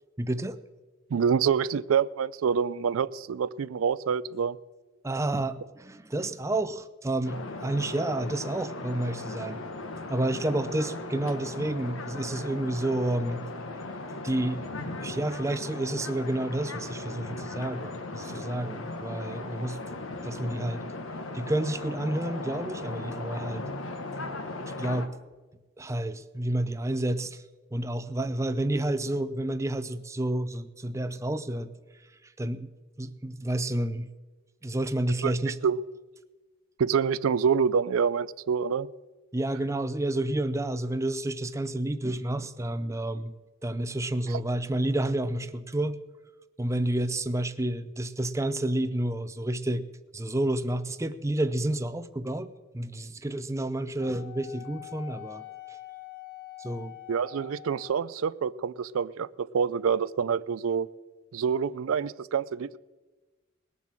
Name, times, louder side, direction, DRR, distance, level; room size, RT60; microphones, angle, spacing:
voice 1, 0.2-0.6 5.0-9.6 10.1-13.4 14.2-14.6 15.0-19.8 20.2-20.8 21.3-23.7 24.8-25.1 25.8-27.4 27.7-31.7 32.2-32.7 33.0-34.1 34.6-35.6 39.3-43.3 43.6-46.0 46.6-49.8 50.1-52.5 52.7-55.4 56.6-57.0, right 1 dB, 15° right, 11 dB, 0.5 m, -30 dB
voice 2, 1.1-4.6 35.2-35.8 36.8-38.9 44.3-44.4 57.1-60.9 61.3-62.8, right 6 dB, 85° right, 17 dB, 0.4 m, -27 dB
sound 1, 7.2-25.1, left 2 dB, 70° left, 1.2 m, -37 dB
Wind instrument woodwind instrument, 54.0-58.1, left 17 dB, 45° left, 1.6 m, -45 dB
19.5 x 7.2 x 7.5 m, 1.2 s
head